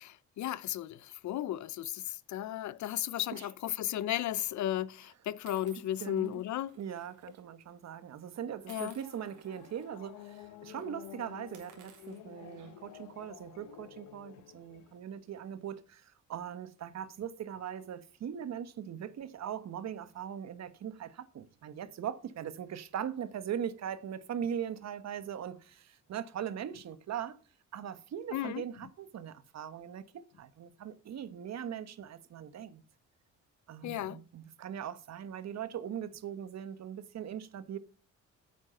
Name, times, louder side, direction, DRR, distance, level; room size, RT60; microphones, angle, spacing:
voice 1, 0.0-6.8 8.7-9.0 28.3-28.6 33.8-34.2, left 12 dB, 70° left, 0.7 m, -35 dB
sound 1, 3.8-4.1 4.8-4.9 5.5-7.4 7.7-7.9 8.7-9.8 10.3-10.4 10.7-10.9 11.4-13.0, right 8 dB, 80° right, 3.4 m, -57 dB
voice 2, 6.0-6.4 6.8-27.4 27.7-32.8 33.7-37.8, right 9 dB, 60° right, 1.2 m, -40 dB
sound 2, 8.6-15.0, left 12 dB, 85° left, 1.1 m, -51 dB
9.2 x 8.3 x 5.7 m
cardioid pair, 90°, 30 cm